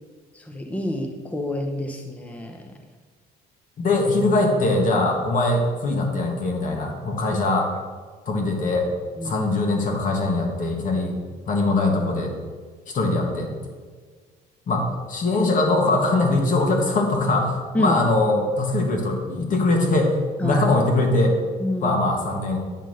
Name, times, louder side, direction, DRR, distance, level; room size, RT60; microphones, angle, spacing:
voice 1, 0.3-2.7 9.2-9.4 17.7-18.0 20.4-20.6 21.6-22.0, left 1 dB, 10° left, 3 dB, 0.7 m, -27 dB
voice 2, 3.8-7.7 8.2-8.9 9.2-11.2 11.5-12.3 12.9-13.5 14.7-20.1 20.4-21.4 21.8-22.6, left 2 dB, 50° left, 2 dB, 1.7 m, -22 dB
9.2 x 3.7 x 6.3 m, 1.5 s
cardioid pair, 110°, 17 cm